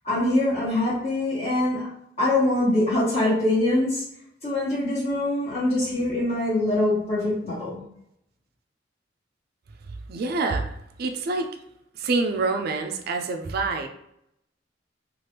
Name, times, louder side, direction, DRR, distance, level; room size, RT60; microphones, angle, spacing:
voice 1, 0.0-1.9 2.2-4.0 4.4-7.8, left 1 dB, 35° left, -12 dB, 1.1 m, -23 dB
voice 2, 10.1-10.7 11.0-11.5 12.0-13.9, right 3 dB, 55° right, 5 dB, 0.4 m, -26 dB
3.2 x 2.4 x 2.9 m, 0.75 s
head